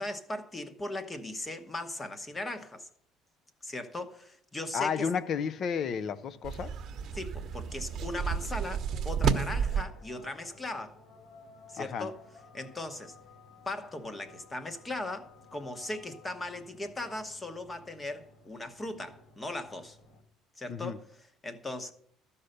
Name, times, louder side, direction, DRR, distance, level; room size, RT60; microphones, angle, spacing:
voice 1, 0.0-2.9 3.6-5.1 7.1-11.0 11.7-12.2 12.5-13.2 13.7-20.0 20.6-21.0 21.4-21.9, left 2 dB, 15° left, 1.0 m, -38 dB
voice 2, 4.7-6.7 11.8-12.1 20.7-21.0, left 6 dB, 40° left, 0.5 m, -32 dB
sound 1, 5.7-20.2, left 3 dB, 85° left, 2.9 m, -57 dB
sound 2, 6.4-9.8, right 6 dB, 40° right, 1.0 m, -31 dB
13.5 x 5.5 x 6.6 m
cardioid pair, 150°, 0 cm